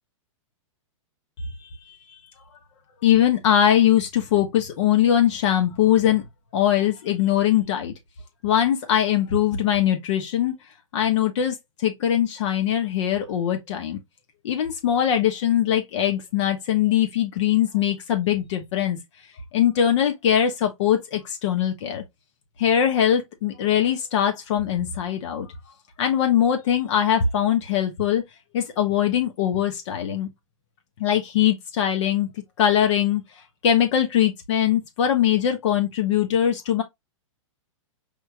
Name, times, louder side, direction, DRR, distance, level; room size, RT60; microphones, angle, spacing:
voice 1, 1.4-2.0 3.0-6.2 6.5-7.9 8.4-10.5 10.9-14.0 14.4-19.0 19.5-22.0 22.6-25.5 26.0-28.2 28.5-30.3 31.0-32.3 32.6-33.2 33.6-36.8, left 10 dB, 60° left, 1.4 m, -21 dB
5.1 x 4.5 x 2.3 m
hypercardioid pair, 125°, 17 cm